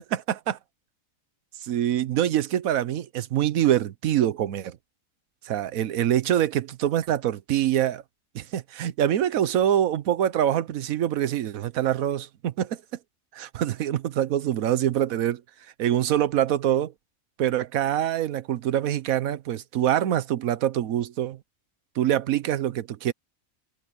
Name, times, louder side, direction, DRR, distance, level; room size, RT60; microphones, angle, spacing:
voice 1, 0.1-0.6 1.6-4.8 5.4-8.0 8.3-12.8 13.3-15.4 15.8-16.9 17.4-21.4 22.0-23.1, right 11 dB, 85° right, 1.2 m, -25 dB
omnidirectional pair, 1.4 m